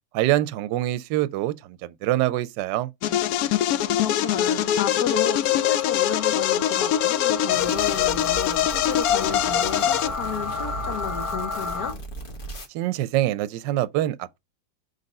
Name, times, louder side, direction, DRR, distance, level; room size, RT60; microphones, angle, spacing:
voice 1, 0.1-2.9 12.7-14.4, right 14 dB, 75° right, 1.2 m, -25 dB
sound 1, 3.0-10.1, left 11 dB, 80° left, 0.8 m, -23 dB
sound 2, 3.2-11.9, left 4 dB, 10° left, 2.1 m, -34 dB
voice 2, 4.0-12.0, left 7 dB, 60° left, 1.4 m, -32 dB
sound 3, 7.5-12.7, right 1 dB, 30° left, 1.3 m, -37 dB
5.2 x 4.0 x 5.2 m
omnidirectional pair, 2.0 m